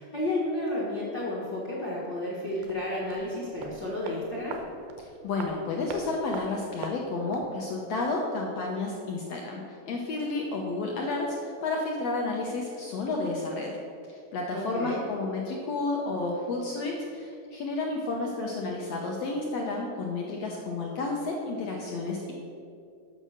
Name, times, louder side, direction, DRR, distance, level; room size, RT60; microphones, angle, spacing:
voice 1, 0.0-4.6 14.5-15.0, left 1 dB, 60° left, -6 dB, 1.0 m, -32 dB
sound 1, 2.6-7.6 7.8-7.9, right 4 dB, 90° right, 2.5 m, -42 dB
voice 2, 5.0-13.7 14.1-22.3, left 3 dB, 80° left, -1 dB, 1.4 m, -31 dB
8.3 x 6.5 x 6.3 m, 2.5 s
omnidirectional pair, 4.1 m